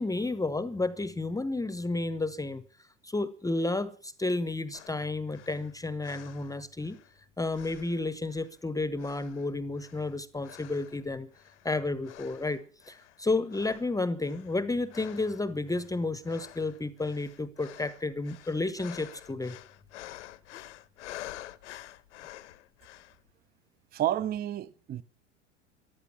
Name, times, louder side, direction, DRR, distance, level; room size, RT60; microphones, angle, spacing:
voice 1, 0.0-2.6 3.0-7.0 7.4-11.3 11.6-19.6, left 2 dB, 10° left, 0.9 m, -31 dB
sound 1, 4.7-7.2 7.5-8.6 9.0-11.0 11.3-11.7 12.0-13.2 13.5-23.2, left 14 dB, 70° left, 1.0 m, -49 dB
voice 2, 23.9-25.0, right 12 dB, 25° right, 0.7 m, -30 dB
14.5 x 12.0 x 7.1 m
figure-of-eight pair, 80°, 37 cm